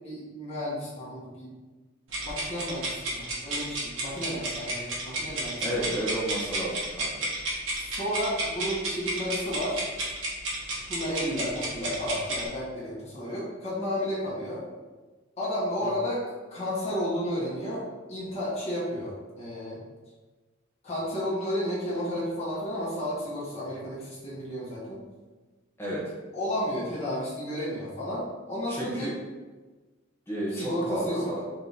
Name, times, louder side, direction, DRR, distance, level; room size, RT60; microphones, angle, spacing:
voice 1, 0.0-1.5 2.2-5.9 7.7-9.9 10.9-14.6 15.4-16.2 16.5-17.8 18.1-19.8 20.8-25.0 26.3-29.1 30.5-31.2, equal, 35° left, -8 dB, 1.3 m, -32 dB
sound 1, 2.1-12.5, right 2 dB, 90° right, 1.2 m, -32 dB
voice 2, 5.6-7.3 15.8-15.9 25.8-26.0 28.7-29.1 30.3-31.4, right 1 dB, 15° left, -6 dB, 0.8 m, -32 dB
4.4 x 2.7 x 3.3 m, 1.3 s
head